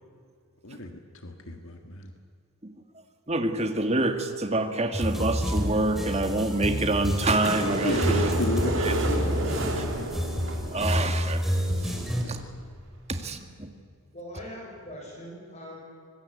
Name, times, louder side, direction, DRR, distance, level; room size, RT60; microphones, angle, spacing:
voice 1, 0.6-2.1 7.8-10.2 12.2-12.5, left 1 dB, 65° left, 5 dB, 1.7 m, -33 dB
voice 2, 3.3-8.3 8.8-9.1 9.8-9.9 10.7-11.4 11.8-11.9 12.3-12.4 13.1-13.7, right 2 dB, 30° right, 7 dB, 1.9 m, -27 dB
sound 1, 4.9-12.2, equal, ahead, 3.2 m, -28 dB
sound 2, 7.4-11.3 12.0-12.1 12.2-12.3 12.5-12.6 13.0-13.1, right 1 dB, 60° right, 3.4 m, -31 dB
voice 3, 14.1-15.8, equal, 30° left, -1 dB, 5.9 m, -42 dB
25.0 x 20.5 x 8.3 m, 2.2 s
head